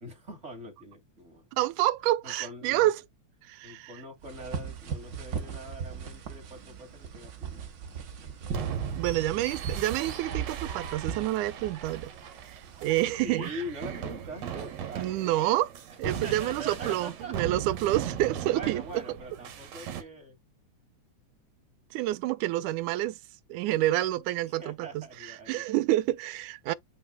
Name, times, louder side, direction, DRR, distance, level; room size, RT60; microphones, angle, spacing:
voice 1, 0.0-1.5 2.2-2.9 3.6-7.7 13.2-15.4 16.0-17.6 18.0-18.2 18.5-20.4 24.5-25.7, right 1 dB, 25° right, 2.2 m, -43 dB
voice 2, 1.5-2.9 3.5-3.9 8.9-12.1 12.5-13.5 15.0-15.7 16.0-18.8 21.9-23.2 23.5-24.9 25.5-26.7, right 15 dB, 85° right, 2.1 m, -28 dB
sound 1, 4.2-13.0, right 7 dB, 45° right, 1.7 m, -38 dB
sound 2, 8.5-20.0, right 8 dB, 65° right, 2.4 m, -38 dB
8.0 x 5.6 x 2.2 m
omnidirectional pair, 3.4 m